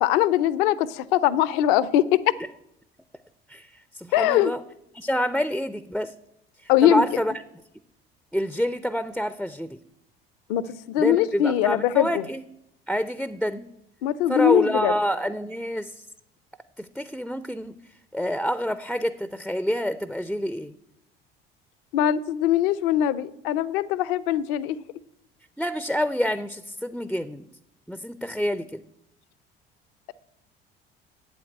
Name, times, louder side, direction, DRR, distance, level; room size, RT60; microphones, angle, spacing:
voice 1, 0.0-2.3 4.1-4.5 6.7-7.2 10.5-12.3 14.0-15.0 21.9-24.8, left 11 dB, 60° left, 19 dB, 0.7 m, -22 dB
voice 2, 3.5-4.6 4.9-6.1 6.6-7.3 8.3-9.8 11.0-12.4 12.9-13.7 14.3-16.1 16.8-17.8 18.1-20.7 25.6-27.4 27.9-28.8, equal, ahead, 14 dB, 0.5 m, -27 dB
8.5 x 8.0 x 8.7 m, 0.79 s
figure-of-eight pair, 60°, 30 cm